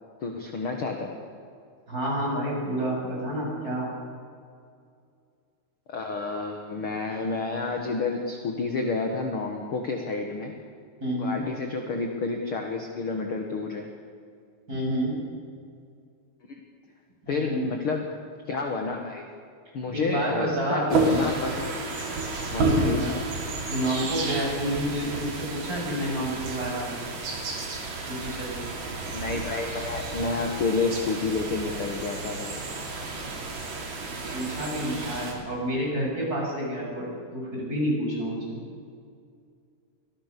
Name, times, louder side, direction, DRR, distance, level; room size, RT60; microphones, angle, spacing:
voice 1, 0.2-1.1 5.9-10.5 11.1-13.9 16.5-16.6 17.3-18.0 18.5-19.2 19.7-21.7 22.5-23.1 25.0-25.1 29.1-32.6, left 4 dB, 45° left, 3 dB, 2.0 m, -30 dB
voice 2, 1.9-3.9 11.0-11.4 14.7-15.1 17.2-17.7 19.9-20.9 22.5-23.1 23.7-26.9 28.1-28.6 34.3-38.6, equal, 20° right, -3 dB, 7.9 m, -29 dB
sound 1, 20.9-35.3, right 3 dB, 85° right, 5.8 m, -31 dB
25.0 x 18.5 x 6.9 m, 2.3 s
omnidirectional pair, 4.3 m